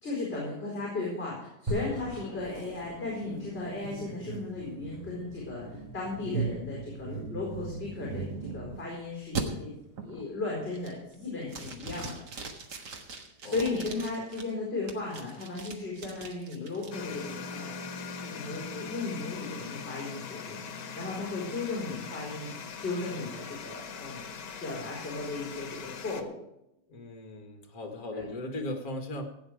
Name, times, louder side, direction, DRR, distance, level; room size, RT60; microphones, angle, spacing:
voice 1, 0.0-9.7 10.0-12.2 13.4-17.8 18.2-24.2 24.6-26.4 28.1-28.2, left 3 dB, 35° left, -4 dB, 4.9 m, -36 dB
sound 1, 1.7-11.9, equal, 15° right, 3.5 m, -45 dB
sound 2, 2.5-8.9 9.4-9.5 10.0-10.3 10.7-11.1 11.5-14.4 14.9-16.9, right 5 dB, 70° right, 2.1 m, -39 dB
sound 3, 16.9-26.2, left 5 dB, 75° left, 1.7 m, -41 dB
voice 2, 26.9-29.2, left 1 dB, 55° left, 4 dB, 2.2 m, -37 dB
16.0 x 9.0 x 5.0 m, 0.83 s
omnidirectional pair, 1.9 m